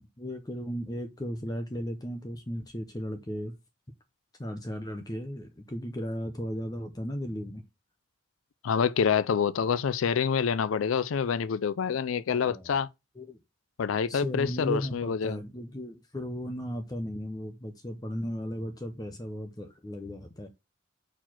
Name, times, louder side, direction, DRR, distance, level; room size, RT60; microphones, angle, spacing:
voice 1, 0.0-3.5 4.4-7.6 12.3-12.7 13.2-13.4 14.1-20.5, equal, 20° left, 0.6 m, -36 dB
voice 2, 8.6-12.9 13.8-15.4, left 6 dB, 90° left, 0.4 m, -27 dB
4.5 x 4.4 x 5.8 m
head